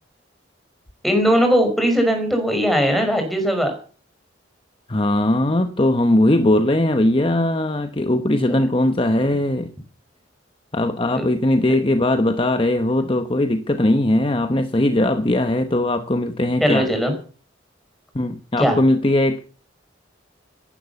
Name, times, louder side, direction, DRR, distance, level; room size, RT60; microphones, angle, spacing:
voice 1, 1.0-3.7 8.5-8.6 11.1-11.2 16.6-17.1 18.6-18.8, equal, ahead, 5.4 m, -19 dB
voice 2, 4.9-9.7 10.7-16.9 18.1-19.4, left 1 dB, 30° left, 1.0 m, -19 dB
16.0 x 11.0 x 7.0 m
head